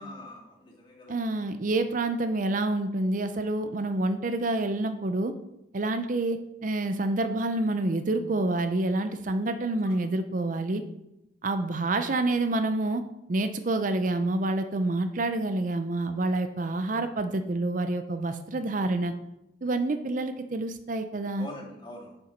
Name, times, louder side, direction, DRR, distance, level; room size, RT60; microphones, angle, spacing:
voice 1, 0.0-1.3 9.8-9.9 21.4-22.2, left 1 dB, 30° left, -3 dB, 2.3 m, -44 dB
voice 2, 1.1-5.3 5.7-10.8 11.4-13.0 13.3-19.1 19.6-21.5, right 2 dB, 50° right, 9 dB, 0.6 m, -28 dB
7.3 x 6.6 x 5.2 m, 0.87 s
head